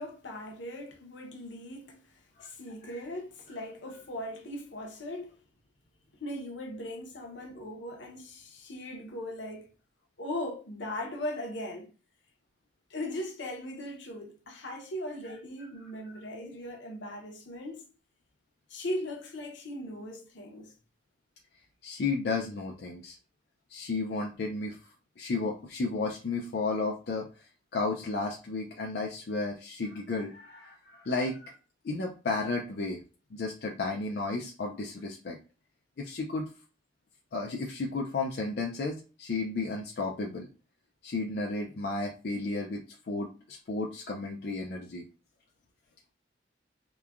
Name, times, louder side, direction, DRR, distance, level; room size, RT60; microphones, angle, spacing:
voice 1, 0.0-5.4 6.1-9.7 10.2-11.9 12.9-17.8 18.7-20.7, left 1 dB, 85° left, 0.7 m, -39 dB
voice 2, 21.8-23.1 23.7-24.8 25.2-27.3 27.7-31.5 31.8-33.0 33.3-35.4 36.0-36.5 37.3-40.5 41.0-42.8 43.1-45.0, left 3 dB, 60° left, 0.4 m, -33 dB
3.0 x 2.1 x 2.4 m
head